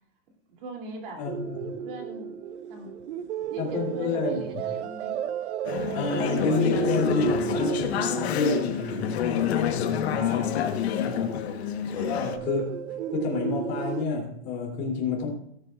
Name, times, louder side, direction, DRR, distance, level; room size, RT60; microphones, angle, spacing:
voice 1, 0.6-2.4 2.7-3.1 3.3-5.2 11.1-11.5 11.9-12.2, right 2 dB, 55° right, 2 dB, 3.0 m, -42 dB
voice 2, 1.2-1.6 3.6-4.4 5.9-11.3 12.1-12.6 12.9-15.3, left 4 dB, 30° left, 0 dB, 3.1 m, -29 dB
sound 1, 1.3-10.9 11.9-14.1, right 8 dB, 85° right, 0.7 m, -33 dB
Conversation / Chatter, 5.7-12.4, left 9 dB, 70° left, 1.3 m, -28 dB
17.5 x 9.2 x 2.5 m, 0.69 s
supercardioid pair, 165°, 33 cm